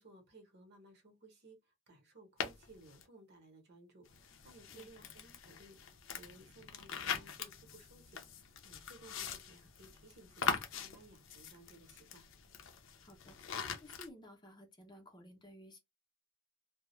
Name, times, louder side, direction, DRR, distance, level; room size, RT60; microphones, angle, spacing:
voice 1, 0.0-12.3, right 2 dB, 55° right, 0.9 m, -59 dB
sound 1, 2.4-3.0 4.1-14.1, left 6 dB, 70° left, 0.5 m, -42 dB
voice 2, 4.7-5.1 13.0-13.4 13.8-15.8, equal, 20° left, 0.6 m, -55 dB
2.3 x 2.0 x 3.0 m
head